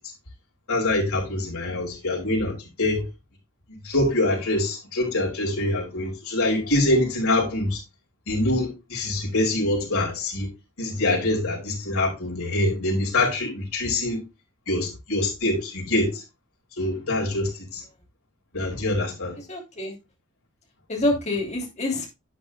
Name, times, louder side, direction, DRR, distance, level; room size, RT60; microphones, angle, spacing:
voice 1, 0.7-3.0 3.8-7.8 8.3-10.5 10.8-14.2 14.7-16.2 16.8-17.8 18.5-19.4, left 1 dB, 75° left, 5.1 m, -24 dB
voice 2, 19.5-19.9 20.9-22.1, left 1 dB, 30° left, 3.0 m, -26 dB
11.0 x 8.6 x 2.2 m
head